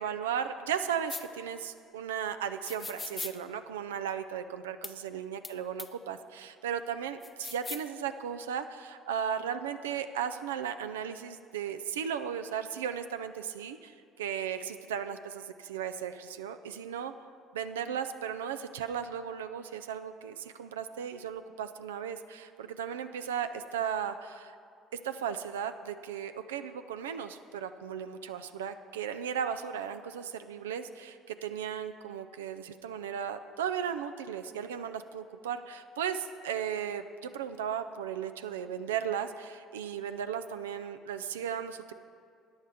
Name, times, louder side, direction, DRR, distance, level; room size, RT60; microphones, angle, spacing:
voice 1, 0.0-17.1 17.5-24.6 25.0-41.9, right 8 dB, 90° right, 9 dB, 0.4 m, -36 dB
sound 1, 1.1-1.2 2.6-3.3 4.8-4.9 5.4-5.5 5.8-5.9 7.2-7.9, left 4 dB, 30° left, 0.6 m, -39 dB
14.5 x 9.5 x 3.5 m, 2.3 s
hypercardioid pair, 65°, 0 cm